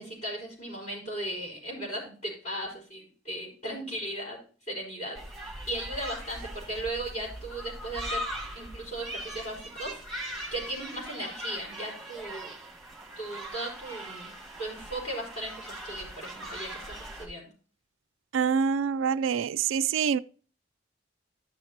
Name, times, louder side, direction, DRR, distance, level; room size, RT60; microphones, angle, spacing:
voice 1, 0.0-4.4 4.7-5.2 5.4-8.2 8.5-12.5 13.2-14.3 14.6-17.4, right 1 dB, 45° left, 4.8 m, -37 dB
sound 1, 5.1-17.3, right 1 dB, ahead, 1.8 m, -40 dB
voice 2, 18.3-20.2, right 7 dB, 90° right, 0.3 m, -26 dB
13.5 x 5.9 x 2.8 m
head